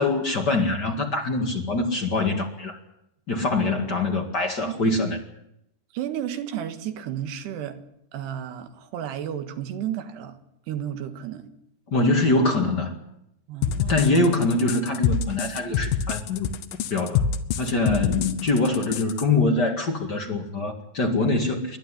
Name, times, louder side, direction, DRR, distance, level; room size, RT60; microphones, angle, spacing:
voice 1, 0.0-2.8 3.3-5.2 11.9-12.9 13.8-16.5 16.9-17.2 17.6-21.8, left 2 dB, 55° left, 2 dB, 1.1 m, -24 dB
voice 2, 5.9-7.8 8.1-10.4 10.7-11.5 13.5-14.2, right 10 dB, 70° right, 8 dB, 3.5 m, -32 dB
sound 1, 13.6-19.2, left 7 dB, 75° left, 2.0 m, -26 dB
29.5 x 11.5 x 9.8 m, 0.80 s
omnidirectional pair, 5.4 m